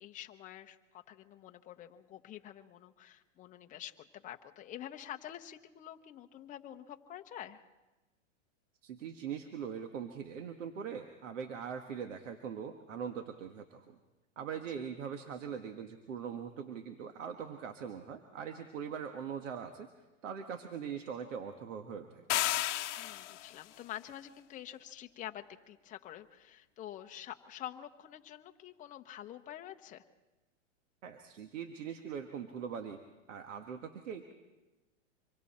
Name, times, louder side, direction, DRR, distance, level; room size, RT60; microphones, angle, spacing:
voice 1, 0.0-7.6 14.7-14.9 23.0-30.0, left 11 dB, 20° left, 6 dB, 0.8 m, -47 dB
voice 2, 8.8-13.9 14.4-19.9 20.2-22.3 31.0-33.0 33.3-34.3, right 7 dB, 80° right, 6 dB, 1.6 m, -41 dB
sound 1, 22.3-23.6, left 14 dB, 70° left, 0.8 m, -32 dB
26.0 x 23.0 x 4.3 m, 1.1 s
hypercardioid pair, 140°, 37 cm